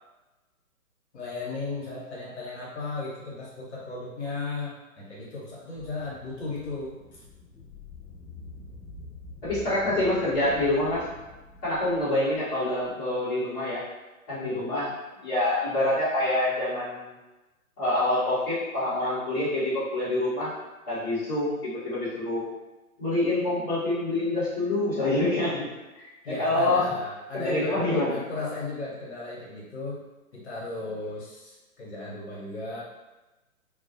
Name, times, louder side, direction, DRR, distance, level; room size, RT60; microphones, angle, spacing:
voice 1, 1.1-6.9 14.3-14.7 26.2-32.8, left 3 dB, 50° left, -6 dB, 0.9 m, -36 dB
sound 1, 5.7-12.9, left 3 dB, 10° right, 0.5 m, -46 dB
voice 2, 9.4-11.1 11.6-13.8 14.3-14.9 15.2-17.1 17.8-20.5 20.9-22.4 23.0-25.7 25.9-26.8 27.3-28.2, left 1 dB, 20° left, -12 dB, 0.7 m, -26 dB
2.3 x 2.0 x 2.7 m, 1.1 s
figure-of-eight pair, 130°, 43 cm